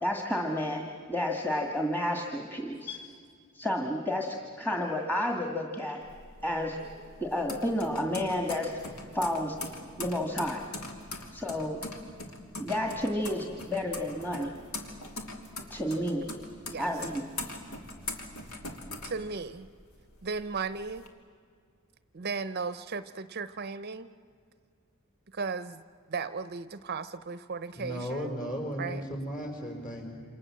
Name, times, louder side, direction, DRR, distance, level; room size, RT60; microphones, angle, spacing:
voice 1, 0.0-0.8 1.1-3.0 3.5-6.0 6.4-6.8 7.2-8.8 9.1-9.5 10.0-10.6 11.3-11.8 12.6-14.6 15.7-16.3 16.8-17.2, left 1 dB, 10° left, 1 dB, 1.8 m, -31 dB
sound 1, 6.0-19.8 20.2-21.1, left 2 dB, 80° left, 3.0 m, -41 dB
voice 2, 19.0-19.7 20.2-21.1 22.1-24.1 25.3-25.8 26.1-28.4 28.8-29.0, right 4 dB, 45° right, 13 dB, 0.7 m, -36 dB
voice 3, 27.7-30.2, equal, 40° left, 2 dB, 5.3 m, -36 dB
28.5 x 27.0 x 7.6 m, 2.1 s
head